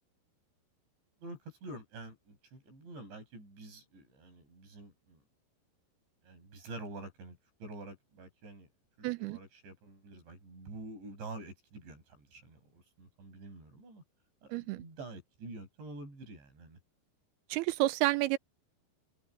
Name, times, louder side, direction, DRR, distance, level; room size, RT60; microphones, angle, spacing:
voice 1, 1.2-5.2 6.2-8.7 9.2-14.0 14.4-16.8, right 2 dB, 70° right, 10.5 m, -47 dB
voice 2, 9.0-9.4 14.5-14.8 17.5-18.4, right 17 dB, 90° right, 2.2 m, -30 dB
omnidirectional pair, 5.2 m